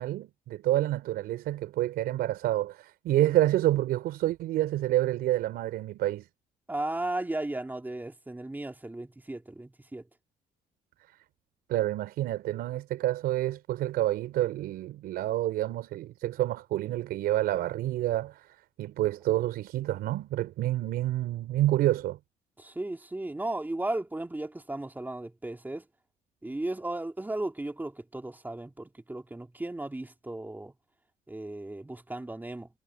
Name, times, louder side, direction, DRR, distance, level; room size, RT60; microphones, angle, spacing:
voice 1, 0.0-6.3 11.7-18.5 18.8-22.2, right 14 dB, 85° right, 4.7 m, -28 dB
voice 2, 6.7-10.0 22.6-25.9 26.4-30.7 31.3-32.7, right 2 dB, 10° right, 3.2 m, -35 dB
cardioid pair, 95°, 16 cm